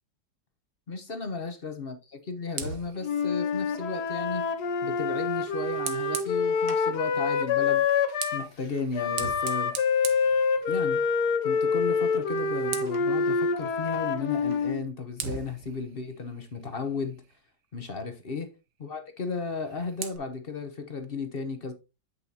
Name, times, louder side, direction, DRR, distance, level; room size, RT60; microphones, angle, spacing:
voice 1, 0.9-2.0 2.3-4.5 4.8-7.8 8.3-9.7 10.7-11.0 11.4-17.2 17.7-18.5 18.8-21.7, left 4 dB, 40° left, 1.0 m, -34 dB
Fire, 2.5-6.9 7.8-11.1 11.4-11.7 12.0-13.1 14.5-14.6 15.2-17.5 19.4-20.2, right 8 dB, 75° right, 1.6 m, -41 dB
Wind instrument woodwind instrument, 3.0-8.5 8.9-14.8, left 5 dB, 65° left, 1.4 m, -26 dB
8.4 x 6.8 x 2.8 m
omnidirectional pair, 1.9 m